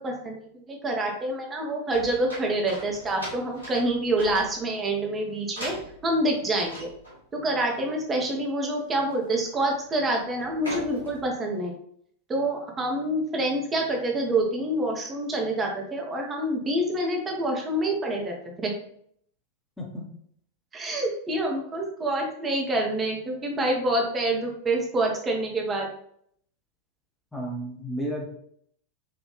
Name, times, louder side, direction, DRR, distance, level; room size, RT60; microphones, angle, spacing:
voice 1, 0.0-5.7 6.0-6.9 7.4-11.8 12.3-18.7 20.7-25.9, right 1 dB, 20° right, 0 dB, 0.9 m, -27 dB
sound 1, 1.9-4.9 5.5-6.2 6.5-7.2 7.6-7.8 8.1-8.3 8.7-9.1 9.5-9.9 10.3-11.3, equal, 80° left, 1.5 m, -40 dB
voice 2, 27.3-28.3, equal, 5° left, -2 dB, 1.2 m, -32 dB
4.6 x 2.7 x 3.0 m, 0.66 s
figure-of-eight pair, 90°, 0 cm